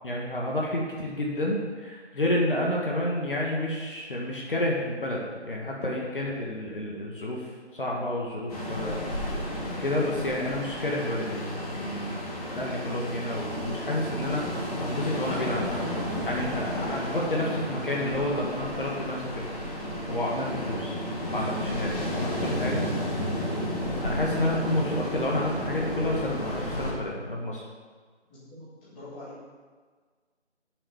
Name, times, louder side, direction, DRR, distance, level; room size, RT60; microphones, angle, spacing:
voice 1, 0.0-9.0 9.8-15.7 16.3-19.4 20.1-21.0 21.3-22.8 24.0-27.6, left 1 dB, 50° left, -2 dB, 1.9 m, -30 dB
Ocean, 8.5-26.9, left 1 dB, 35° left, 3.2 m, -32 dB
voice 2, 28.3-29.4, left 1 dB, 10° left, -12 dB, 2.5 m, -44 dB
8.4 x 7.5 x 7.0 m, 1.5 s
figure-of-eight pair, 160°, 35 cm